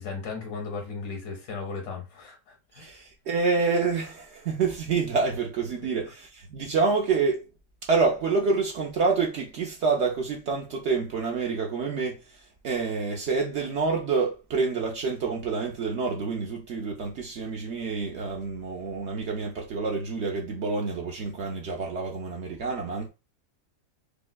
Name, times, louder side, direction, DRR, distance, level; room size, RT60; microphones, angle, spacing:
voice 1, 0.0-3.0, left 4 dB, 80° left, 1.8 m, -36 dB
voice 2, 2.7-7.5 7.8-23.1, right 4 dB, 75° right, 0.6 m, -27 dB
4.7 x 2.0 x 2.2 m
omnidirectional pair, 1.8 m